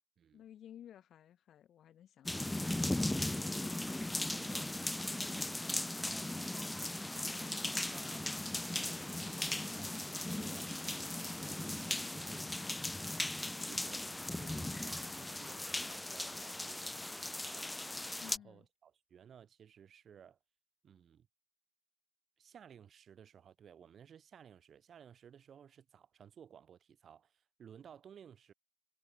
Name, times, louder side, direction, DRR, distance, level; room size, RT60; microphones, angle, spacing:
voice 1, 0.3-2.6 18.2-18.7, left 10 dB, 70° left, 1.1 m, -56 dB
sound 1, 2.3-18.4, left 1 dB, 10° left, 0.4 m, -38 dB
voice 2, 3.2-3.6 4.3-4.8 5.2-6.8 7.3-10.8 11.2-11.7 12.1-12.6 13.6-17.8 18.3-20.4 20.8-21.3 22.4-28.5, right 8 dB, 60° right, 2.1 m, -58 dB
cardioid pair, 90°, 0 cm